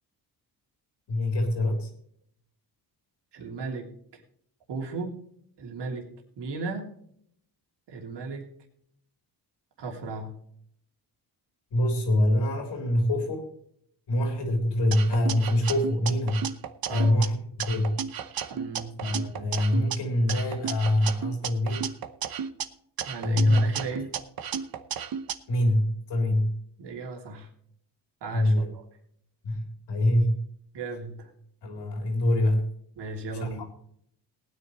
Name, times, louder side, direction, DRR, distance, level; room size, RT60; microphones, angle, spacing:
voice 1, 1.1-1.9 11.7-13.5 14.1-16.4 16.9-18.0 19.0-21.8 23.2-23.6 25.5-26.6 28.3-28.7 29.4-30.4 31.6-32.7 33.4-33.7, left 1 dB, 85° left, 3 dB, 3.8 m, -25 dB
voice 2, 3.3-3.9 4.7-5.2 5.6-6.1 6.4-6.9 7.9-8.5 9.8-10.3 16.9-17.2 18.5-18.9 23.1-24.1 26.8-27.5 28.2-28.8 30.7-31.3 33.0-33.7, right 4 dB, 80° right, 1 dB, 3.1 m, -36 dB
sound 1, 14.9-17.3 17.6-20.0 20.3-22.6 23.0-25.3, right 8 dB, 60° right, 1.0 m, -33 dB
19.5 x 9.7 x 3.2 m, 0.67 s
cardioid pair, 105°, 41 cm